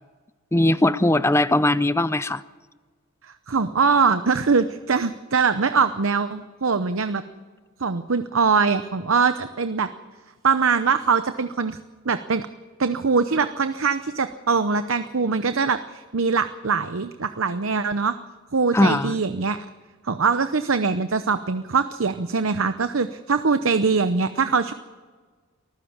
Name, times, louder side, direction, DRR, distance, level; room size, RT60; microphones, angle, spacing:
voice 1, 0.5-2.4 18.7-19.2, left 1 dB, 10° left, 15 dB, 0.5 m, -19 dB
voice 2, 3.5-7.2 7.8-9.9 10.4-11.8 12.1-12.5 12.8-18.1 18.5-19.6 20.0-24.7, right 5 dB, 65° right, 10 dB, 0.8 m, -22 dB
24.0 x 15.0 x 7.2 m, 1.4 s
head